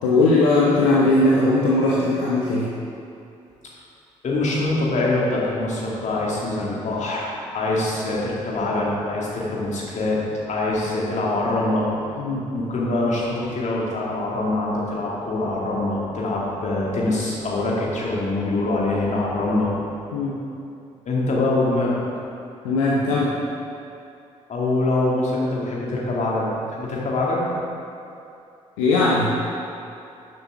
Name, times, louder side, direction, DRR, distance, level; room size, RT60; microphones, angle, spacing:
voice 1, 0.0-2.7 12.2-12.5 20.1-20.4 22.6-23.4 28.8-29.3, left 2 dB, 70° left, -5 dB, 1.0 m, -19 dB
voice 2, 4.2-10.2 10.5-11.9 12.5-19.7 21.0-22.0 24.5-26.5 26.8-27.5, left 2 dB, 45° left, -4 dB, 2.4 m, -24 dB
11.5 x 7.3 x 3.7 m, 2.6 s
figure-of-eight pair, 45°, 17 cm